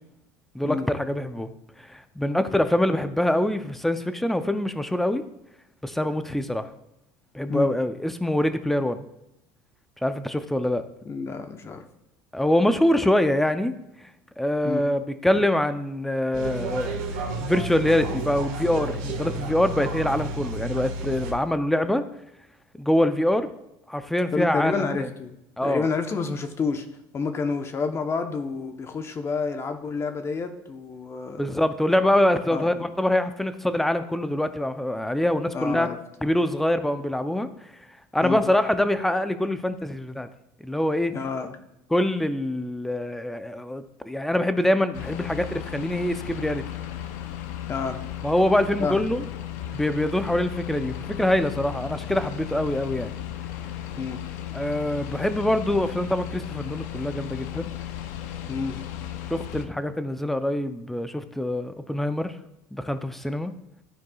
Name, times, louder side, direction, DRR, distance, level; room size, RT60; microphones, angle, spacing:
voice 1, 0.5-1.5 1.9-5.2 5.8-6.7 7.3-9.1 10.0-10.8 12.3-13.7 14.4-22.0 22.8-23.5 23.9-25.1 25.6-25.9 31.4-35.9 36.2-37.5 38.1-40.3 40.6-41.1 41.9-46.6 48.2-49.2 49.7-53.1 54.5-57.7 59.3-62.3 62.7-63.5, left 1 dB, 5° left, 10 dB, 0.5 m, -24 dB
voice 2, 11.0-11.8 14.6-14.8 24.3-25.4 25.6-26.9 27.1-31.6 32.5-32.7 35.5-36.0 38.2-38.4 41.1-41.6 47.7-48.0 48.8-49.0 53.9-54.2 58.5-58.8, left 4 dB, 30° left, 7 dB, 0.9 m, -29 dB
sound 1, 16.3-21.3, right 2 dB, 75° right, 1.5 m, -31 dB
sound 2, 44.9-59.7, left 11 dB, 80° left, 0.6 m, -35 dB
13.0 x 4.7 x 2.3 m, 0.87 s
supercardioid pair, 110°, 9 cm